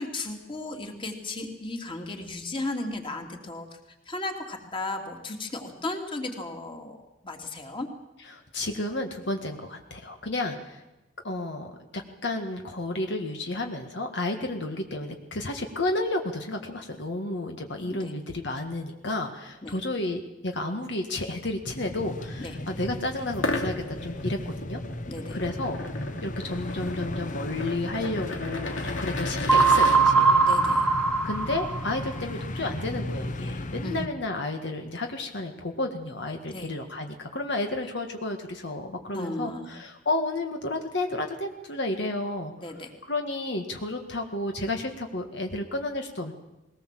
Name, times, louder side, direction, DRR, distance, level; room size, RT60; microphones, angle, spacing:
voice 1, 0.0-3.7 4.1-7.0 7.2-7.9 17.8-18.1 19.6-19.8 22.4-22.6 25.1-25.4 30.4-30.9 33.8-34.1 36.5-36.7 39.1-39.7 42.6-42.9, left 2 dB, 25° left, 3 dB, 2.9 m, -35 dB
voice 2, 8.2-10.8 11.2-24.8 25.3-25.8 26.2-30.4 31.2-42.5 43.0-46.3, left 2 dB, 65° left, 4 dB, 1.9 m, -32 dB
sound 1, 21.6-34.1, left 1 dB, 45° left, 1.1 m, -36 dB
sound 2, 23.3-30.0, left 2 dB, 85° left, 2.8 m, -35 dB
sound 3, 29.5-32.1, right 4 dB, 5° left, 1.8 m, -20 dB
21.0 x 19.0 x 7.7 m, 1.0 s
head